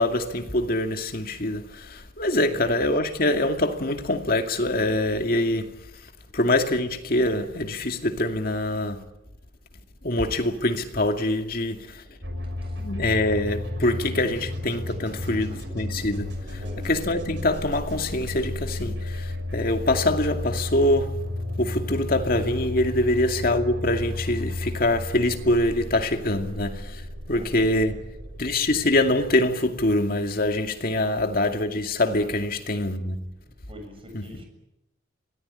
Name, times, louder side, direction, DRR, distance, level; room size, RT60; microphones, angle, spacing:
voice 1, 0.0-5.7 6.3-9.0 10.0-11.8 12.8-16.3 16.8-21.1 21.6-27.0 27.3-27.9 28.4-33.2 34.1-34.3, left 1 dB, 50° left, 2.4 m, -24 dB
sound 1, 12.2-30.0, left 1 dB, 65° right, 6.1 m, -33 dB
voice 2, 15.2-15.6 16.5-16.9 23.0-23.1 27.3-28.1 33.7-34.4, equal, 30° right, 7.3 m, -44 dB
26.0 x 18.5 x 10.0 m
head